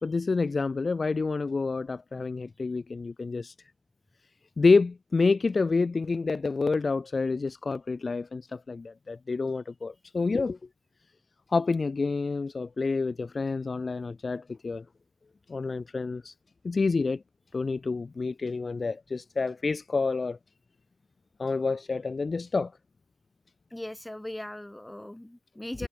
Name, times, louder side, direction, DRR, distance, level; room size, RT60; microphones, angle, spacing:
voice 1, 0.0-3.5 4.6-10.6 11.5-14.8 15.5-16.3 16.6-17.2 17.5-20.4 21.4-22.7, left 4 dB, 30° left, 0.5 m, -28 dB
voice 2, 23.7-25.9, left 1 dB, 5° left, 1.0 m, -39 dB
cardioid pair, 90°, 0 cm